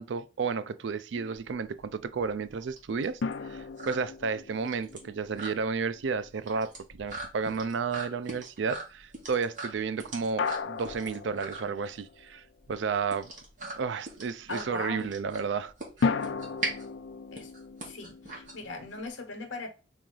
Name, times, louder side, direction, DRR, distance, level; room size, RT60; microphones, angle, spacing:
voice 1, 0.0-13.3 13.7-15.7 16.0-16.1, right 5 dB, 75° right, 0.4 m, -32 dB
sound 1, 1.5-19.1, right 2 dB, 45° right, 1.6 m, -41 dB
sound 2, 3.2-6.6 10.4-12.4 16.0-19.1, left 5 dB, 75° left, 0.4 m, -35 dB
voice 2, 14.5-15.1 17.3-17.5 17.8-19.7, left 3 dB, 90° left, 1.0 m, -39 dB
3.8 x 3.1 x 3.7 m
head